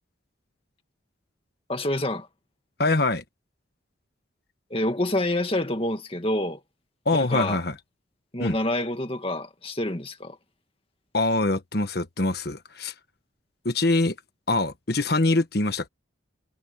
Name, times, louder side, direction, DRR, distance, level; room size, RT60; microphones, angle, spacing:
voice 1, 1.7-2.3 4.7-6.6 7.1-7.6 8.3-10.4, left 1 dB, 30° left, 2.0 m, -27 dB
voice 2, 2.8-3.2 7.0-7.7 8.4-8.6 11.1-12.9 13.6-14.2 14.5-15.9, left 2 dB, 50° left, 1.4 m, -24 dB
head